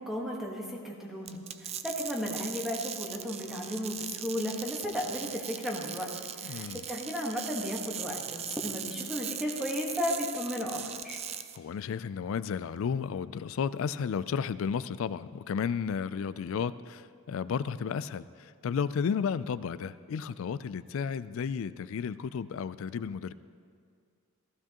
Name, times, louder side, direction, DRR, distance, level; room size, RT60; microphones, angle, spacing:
voice 1, 0.0-6.1 6.4-11.2, equal, ahead, -1 dB, 1.3 m, -34 dB
sound 1, 1.2-11.6, right 9 dB, 30° right, 0.3 m, -39 dB
voice 2, 6.4-6.8 11.5-23.3, left 6 dB, 60° left, 16 dB, 0.3 m, -33 dB
15.0 x 14.5 x 2.9 m, 2.2 s
head